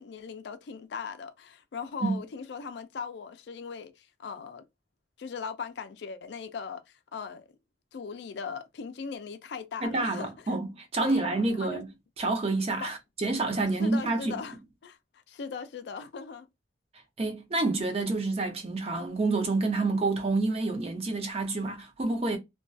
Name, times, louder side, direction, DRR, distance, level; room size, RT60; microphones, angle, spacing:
voice 1, 0.0-4.6 5.2-6.8 7.1-7.5 7.9-10.5 11.0-11.8 12.8-12.9 13.8-16.5, left 5 dB, 70° left, 0.4 m, -39 dB
voice 2, 9.8-11.9 12.2-14.4 17.2-22.4, right 3 dB, 35° right, 0.5 m, -28 dB
2.3 x 2.2 x 2.4 m
head